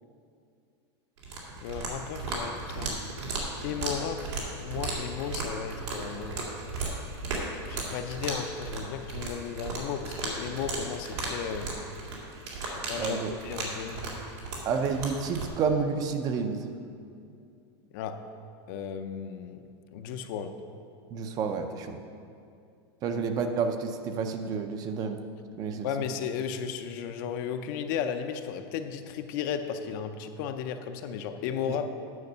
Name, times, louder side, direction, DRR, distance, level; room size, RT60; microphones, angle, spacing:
sound 1, 1.2-15.5, right 3 dB, 85° right, 2.4 m, -36 dB
voice 1, 1.6-3.0 3.6-6.4 7.6-11.7 12.6-14.1 17.9-18.3 18.7-19.6 19.9-20.6 23.1-23.2 25.8-31.9, left 7 dB, 50° left, 8 dB, 0.6 m, -35 dB
voice 2, 13.0-13.3 14.7-16.6 21.1-22.0 23.0-25.2 25.6-25.9 31.7-31.9, right 5 dB, 25° right, 7 dB, 0.5 m, -30 dB
9.5 x 5.2 x 6.7 m, 2.4 s
supercardioid pair, 160°, 14 cm